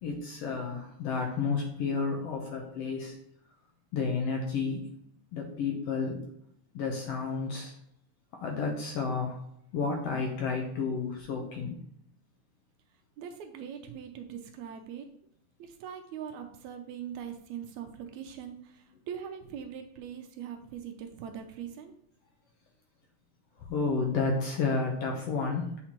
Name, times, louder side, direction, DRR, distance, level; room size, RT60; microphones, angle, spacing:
voice 1, 0.0-3.1 3.9-4.9 5.3-6.2 6.7-7.7 8.3-9.4 9.7-11.8 23.6-25.8, left 4 dB, 70° left, 1 dB, 1.7 m, -31 dB
voice 2, 13.2-15.1 15.6-21.9, right 8 dB, 80° right, 5 dB, 1.9 m, -41 dB
8.5 x 4.3 x 2.9 m, 0.72 s
omnidirectional pair, 3.5 m